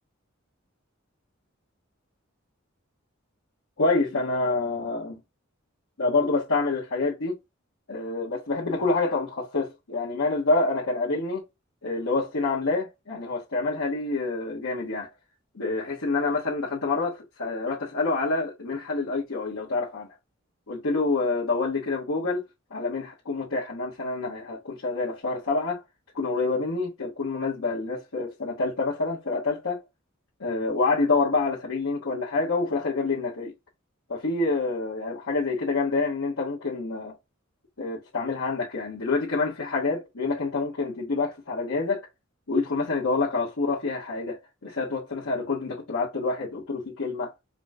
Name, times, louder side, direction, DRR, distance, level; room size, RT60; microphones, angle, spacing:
voice 1, 3.8-5.2 6.0-7.3 7.9-11.4 11.8-15.1 15.5-20.1 20.7-22.4 22.7-25.8 26.1-29.8 30.4-33.5 34.1-37.1 37.8-42.1 42.5-47.3, left 3 dB, 90° left, 1.2 m, -27 dB
4.9 x 2.1 x 3.5 m
head